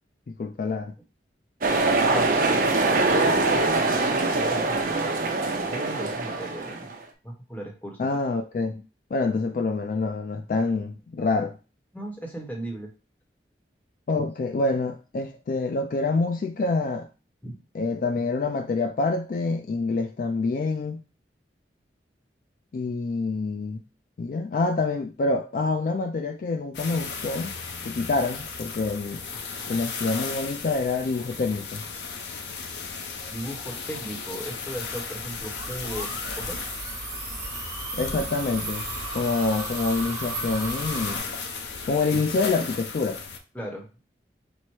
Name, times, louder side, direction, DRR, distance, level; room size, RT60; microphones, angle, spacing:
voice 1, 0.3-0.9 8.0-8.8 9.1-11.6 14.1-17.1 17.7-21.0 22.7-23.8 24.2-27.5 27.8-29.2 29.7-31.8 37.9-38.9 39.1-41.2 41.9-43.2, left 3 dB, 50° left, 0.3 m, -26 dB
sound 1, 1.6-6.9, right 3 dB, 50° right, 0.6 m, -23 dB
voice 2, 2.1-5.0 5.7-6.9 7.2-8.0 11.9-12.9 14.1-14.2 17.4-17.6 33.3-36.1 36.4-36.6 43.5-43.9, right 1 dB, 10° left, 0.9 m, -37 dB
sound 2, 26.7-43.4, left 5 dB, 80° left, 0.7 m, -36 dB
sound 3, 35.6-41.2, right 2 dB, 15° right, 1.3 m, -35 dB
4.3 x 2.1 x 4.6 m
head